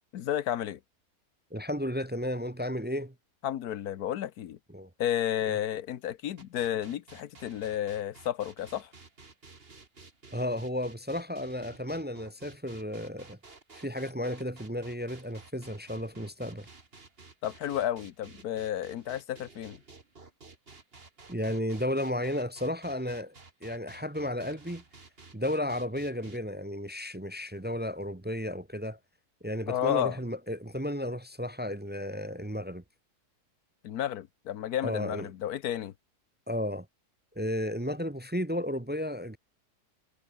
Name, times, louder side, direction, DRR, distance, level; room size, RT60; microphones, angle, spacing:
voice 1, 0.1-0.8 3.4-4.6 5.0-8.9 17.4-19.8 29.7-30.2 33.8-35.9, left 11 dB, 75° left, 1.4 m, -32 dB
voice 2, 1.5-3.1 4.7-4.9 5.5-5.6 10.3-13.4 13.7-16.7 21.3-23.3 23.6-24.8 25.3-29.0 29.4-32.8 34.8-35.3 36.5-36.9 37.4-39.4, left 1 dB, 10° right, 0.5 m, -33 dB
sound 1, 6.4-26.4, right 3 dB, 35° right, 2.5 m, -53 dB
omnidirectional pair, 1.7 m